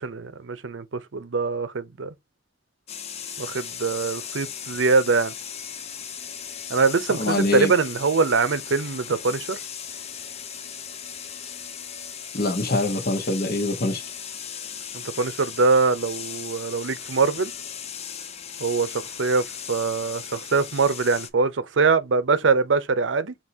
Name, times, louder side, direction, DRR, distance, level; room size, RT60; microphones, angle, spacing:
voice 1, 0.0-2.1 3.4-5.3 6.7-9.6 15.2-17.5 18.6-23.3, right 4 dB, 90° right, 0.6 m, -23 dB
sound 1, 2.9-21.3, left 8 dB, 35° left, 0.5 m, -37 dB
voice 2, 7.2-7.7 12.3-14.0, left 2 dB, 55° left, 1.2 m, -24 dB
5.3 x 2.8 x 2.7 m
head